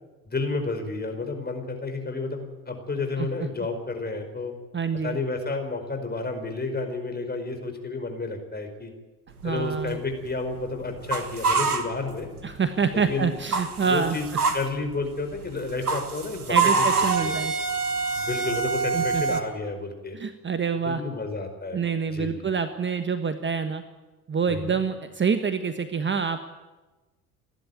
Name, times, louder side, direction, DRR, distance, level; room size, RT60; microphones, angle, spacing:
voice 1, 0.3-4.5 5.0-8.9 9.4-12.3 12.9-13.3 13.8-14.3 14.5-16.9 17.2-17.4 18.1-20.2 20.8-21.8 22.1-22.5 24.5-24.8, left 3 dB, 20° left, 5 dB, 5.0 m, -31 dB
voice 2, 4.7-5.2 9.4-10.0 12.4-14.2 16.5-17.5 18.9-19.4 20.1-21.0 21.7-23.8 24.3-26.4, right 6 dB, 25° right, 9 dB, 1.4 m, -26 dB
sound 1, 9.4-12.6 12.9-19.4, right 4 dB, 90° right, 1.4 m, -26 dB
29.0 x 11.5 x 9.4 m, 1.2 s
figure-of-eight pair, 60°, 43 cm